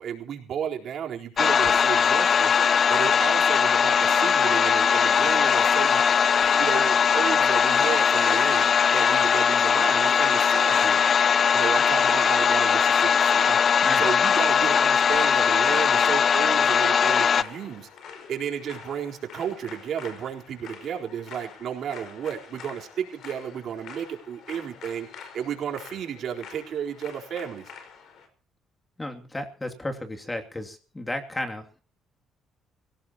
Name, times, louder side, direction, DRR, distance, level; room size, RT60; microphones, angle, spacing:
voice 1, 0.0-2.5 2.9-6.0 6.6-11.0 11.5-13.6 13.9-17.9 18.3-27.7, right 8 dB, 65° right, 1 dB, 4.0 m, -33 dB
sound 1, 1.4-17.4, left 7 dB, 45° left, 0.7 m, -20 dB
sound 2, 11.2-28.3, left 6 dB, 70° left, 5.0 m, -46 dB
voice 2, 29.0-31.7, left 1 dB, 15° left, 4 dB, 2.6 m, -33 dB
24.5 x 17.0 x 3.0 m, 0.40 s
cardioid pair, 100°, 0 cm